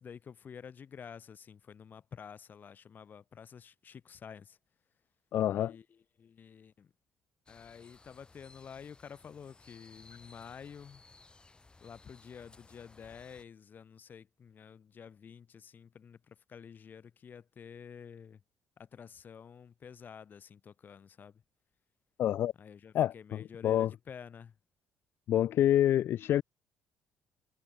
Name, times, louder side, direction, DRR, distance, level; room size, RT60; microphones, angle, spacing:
voice 1, 0.0-4.6 5.5-6.9 7.5-11.0 11.8-18.4 18.8-21.4 22.6-24.5, left 7 dB, 45° left, 4.6 m, -50 dB
voice 2, 5.3-5.7 22.2-22.5 22.9-23.1 23.6-23.9 25.3-26.4, left 11 dB, 65° left, 0.5 m, -26 dB
sound 1, 7.5-13.4, left 3 dB, 20° left, 6.1 m, -59 dB
cardioid pair, 90°, 4 cm